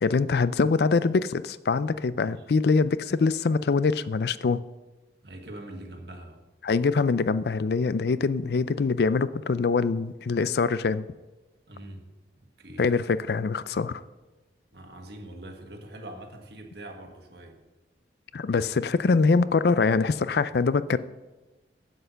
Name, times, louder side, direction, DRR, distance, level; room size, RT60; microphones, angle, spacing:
voice 1, 0.0-4.6 6.6-11.1 12.8-14.0 18.3-21.0, left 4 dB, 65° left, 16 dB, 0.4 m, -24 dB
voice 2, 5.2-6.4 11.7-12.1 12.4-13.0 14.7-17.6, right 1 dB, 70° right, 4 dB, 1.6 m, -43 dB
8.0 x 7.8 x 6.9 m, 1.1 s
head